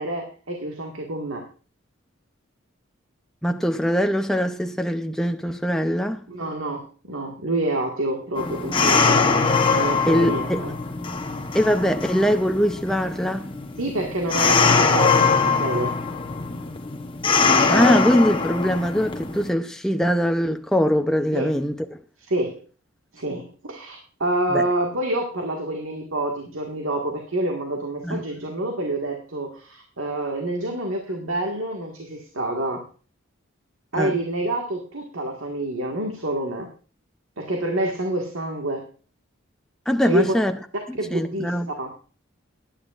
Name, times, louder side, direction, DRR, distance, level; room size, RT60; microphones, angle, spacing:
voice 1, 0.0-1.5 6.3-9.2 9.7-10.7 13.8-16.0 21.3-21.5 22.3-22.6 23.1-32.8 33.9-36.7 37.4-38.9 40.1-40.3 41.0-41.9, right 1 dB, 85° right, 1.7 m, -27 dB
voice 2, 3.4-6.2 10.1-10.6 11.5-13.6 17.5-22.0 24.5-24.6 28.0-28.2 34.0-34.2 39.9-40.5 40.9-41.7, equal, 5° left, 0.5 m, -22 dB
sound 1, 8.4-19.5, left 4 dB, 25° left, 0.9 m, -22 dB
18.5 x 10.0 x 2.5 m
head